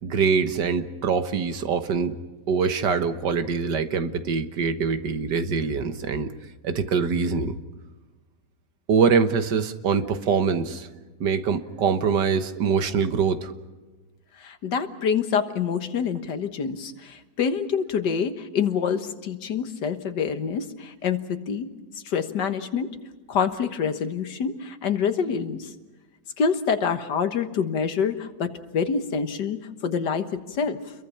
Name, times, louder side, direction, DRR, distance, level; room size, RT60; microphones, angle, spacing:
voice 1, 0.0-2.2 2.5-6.3 6.6-7.6 8.9-10.9 11.2-13.5, right 6 dB, 75° right, 9 dB, 1.9 m, -24 dB
voice 2, 14.4-21.7 21.9-23.0 23.3-25.7 26.4-30.8, left 6 dB, 70° left, 8 dB, 2.0 m, -26 dB
29.5 x 22.5 x 5.7 m, 1.2 s
omnidirectional pair, 1.9 m